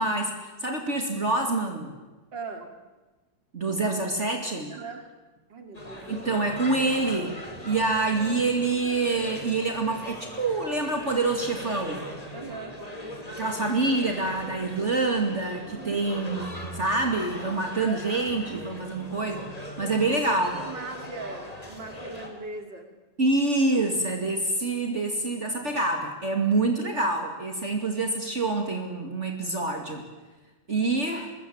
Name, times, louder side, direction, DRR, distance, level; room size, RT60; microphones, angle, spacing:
voice 1, 0.0-1.9 3.5-4.7 6.1-7.4 7.6-12.0 13.4-19.5 19.8-20.6 23.2-30.0 30.7-31.3, right 3 dB, 40° right, 3 dB, 2.7 m, -26 dB
voice 2, 2.3-2.7 4.7-5.1 5.5-6.1 12.3-12.8 15.7-16.0 17.9-18.0 18.5-18.6 20.1-20.2 20.5-23.0, right 4 dB, 90° right, 5 dB, 3.5 m, -39 dB
sound 1, 5.7-22.3, equal, 20° left, 3.9 m, -40 dB
26.0 x 21.0 x 8.8 m, 1.2 s
omnidirectional pair, 1.9 m